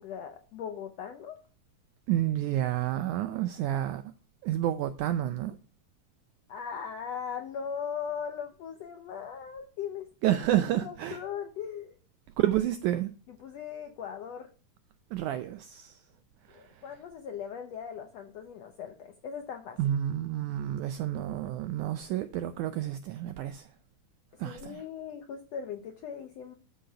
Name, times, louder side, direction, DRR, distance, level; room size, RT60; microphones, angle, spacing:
voice 1, 0.0-1.4 6.5-10.1 10.5-12.0 13.3-14.5 16.5-19.8 24.4-26.5, left 7 dB, 75° left, 1.5 m, -39 dB
voice 2, 2.1-4.0 4.4-5.6 10.2-11.2 12.4-13.1 15.1-16.0 16.5-16.6 19.8-23.7 24.4-24.8, right 12 dB, 85° right, 1.7 m, -29 dB
12.5 x 5.3 x 5.7 m
omnidirectional pair, 4.1 m